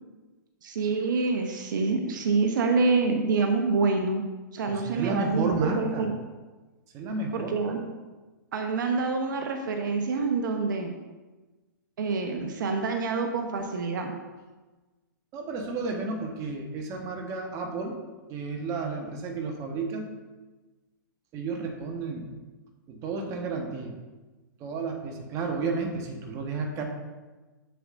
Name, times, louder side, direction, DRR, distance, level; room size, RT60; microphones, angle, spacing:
voice 1, 0.6-4.2 4.5-6.1 7.3-7.9 8.5-11.0 12.0-14.1, right 4 dB, 70° right, 4 dB, 0.8 m, -26 dB
voice 2, 4.7-6.1 6.9-7.6 15.3-18.0 18.3-20.1 21.3-22.3 22.9-23.9 24.6-26.8, right 3 dB, 30° right, 2 dB, 1.1 m, -32 dB
7.3 x 6.8 x 2.5 m, 1.2 s
hypercardioid pair, 130°, 11 cm